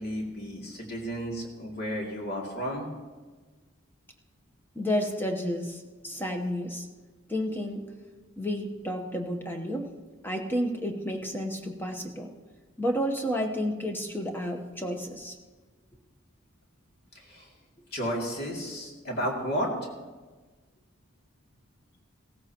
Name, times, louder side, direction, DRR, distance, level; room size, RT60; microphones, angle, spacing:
voice 1, 0.0-2.9 17.3-17.5 17.9-19.7, equal, 50° left, -1 dB, 2.5 m, -32 dB
voice 2, 4.7-6.9 7.3-7.8 8.4-9.9 10.2-12.3 12.8-15.4, equal, 10° left, 3 dB, 0.9 m, -31 dB
16.5 x 14.5 x 3.0 m, 1.3 s
head